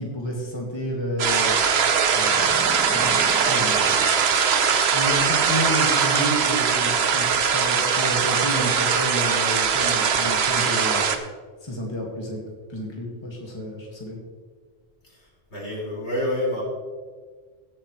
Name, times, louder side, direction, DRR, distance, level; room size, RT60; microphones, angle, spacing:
voice 1, 0.0-1.6 2.1-3.1 3.5-4.0 4.9-11.1 11.6-12.4 12.7-14.2, equal, 25° left, -2 dB, 2.0 m, -30 dB
sound 1, 1.2-11.2, right 6 dB, 65° right, 1.1 m, -21 dB
sound 2, 2.2-5.2, right 2 dB, ahead, 1.4 m, -39 dB
Percussion, 3.8-8.8, left 2 dB, 45° right, 1.5 m, -42 dB
voice 2, 15.0-16.6, left 1 dB, 75° left, -4 dB, 3.9 m, -28 dB
17.0 x 8.6 x 3.2 m, 1.5 s
omnidirectional pair, 1.2 m